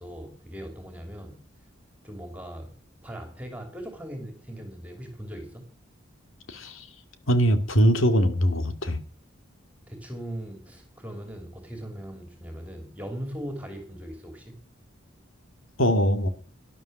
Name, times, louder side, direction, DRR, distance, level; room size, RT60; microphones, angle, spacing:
voice 1, 0.0-1.4 2.0-2.7 3.0-5.7 9.9-14.6, equal, 5° right, 5 dB, 3.0 m, -39 dB
voice 2, 6.5-6.8 7.3-9.0 15.8-16.3, equal, 85° left, 9 dB, 2.2 m, -22 dB
12.5 x 11.5 x 7.5 m, 0.40 s
head